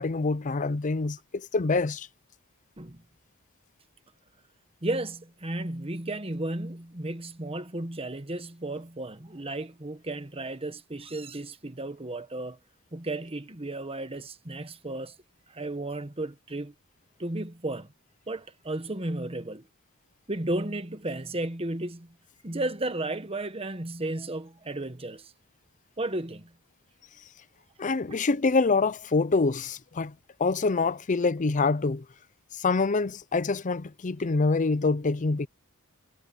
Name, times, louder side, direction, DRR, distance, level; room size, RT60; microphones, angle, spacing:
voice 1, 0.0-2.1 27.8-30.1 30.4-32.0 32.6-35.5, left 3 dB, 35° left, 0.5 m, -26 dB
voice 2, 4.8-12.6 12.9-15.1 15.5-16.7 17.2-17.9 18.3-19.6 20.3-22.1 22.4-25.3 26.0-26.5 27.8-27.9, right 2 dB, 25° right, 1.4 m, -34 dB
head